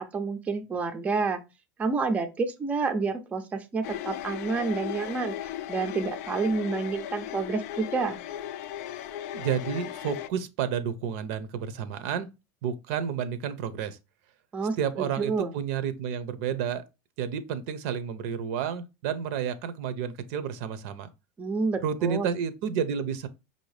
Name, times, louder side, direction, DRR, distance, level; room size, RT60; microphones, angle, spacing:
voice 1, 0.0-1.4 1.8-8.2 14.5-15.5 21.4-22.3, right 4 dB, 15° right, 0.5 m, -29 dB
sound 1, 3.8-10.3, left 12 dB, 75° left, 0.4 m, -36 dB
voice 2, 9.3-12.3 12.6-14.0 14.8-16.8 17.2-21.1 21.8-23.3, right 8 dB, 65° right, 0.6 m, -30 dB
5.3 x 2.7 x 3.2 m
supercardioid pair, 150°, 8 cm